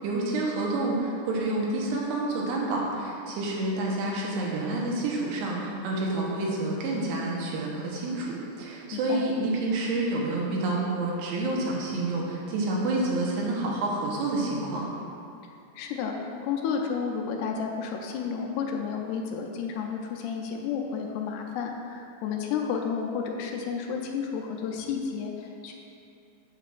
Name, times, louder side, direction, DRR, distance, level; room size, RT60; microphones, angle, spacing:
voice 1, 0.0-14.9, right 2 dB, 85° right, -3 dB, 3.1 m, -28 dB
voice 2, 8.9-9.2 15.8-16.2 16.4-25.8, left 6 dB, 85° left, 2 dB, 2.7 m, -31 dB
8.1 x 6.9 x 2.4 m, 2.6 s
omnidirectional pair, 4.6 m